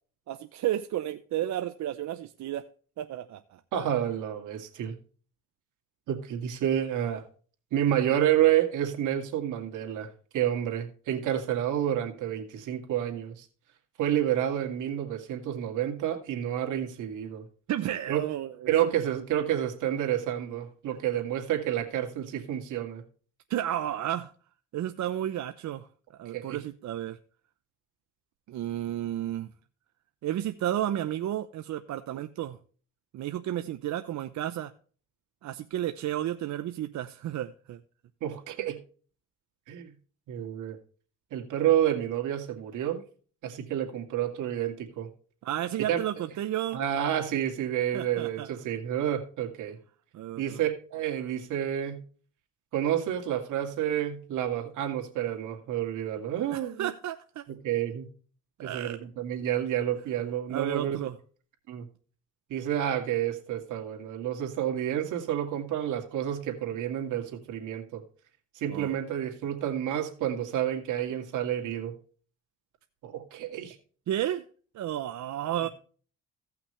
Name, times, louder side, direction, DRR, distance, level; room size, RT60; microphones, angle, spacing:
voice 1, 0.3-2.7 3.0-3.6 17.7-18.7 23.5-24.3 24.7-25.9 26.2-27.2 28.5-29.5 30.2-32.6 33.1-34.7 35.4-37.8 45.4-46.8 47.9-48.5 50.1-50.6 56.5-57.4 58.6-59.0 60.5-61.2 68.7-68.9 74.1-74.4 74.7-75.7, right 12 dB, 70° right, 9 dB, 0.7 m, -32 dB
voice 2, 3.7-5.0 6.1-7.2 7.7-13.5 14.0-17.5 18.1-18.2 18.7-23.0 26.3-26.6 38.2-38.8 39.7-39.9 40.3-40.8 41.3-43.0 43.4-45.1 45.9-46.0 46.7-49.8 50.4-52.0 52.7-56.9 57.6-58.1 58.6-61.0 61.7-61.9 62.5-68.0 68.5-71.9 73.0-73.8, right 11 dB, 85° right, 3 dB, 2.3 m, -29 dB
16.5 x 5.9 x 3.2 m, 0.41 s
cardioid pair, 90°, 30 cm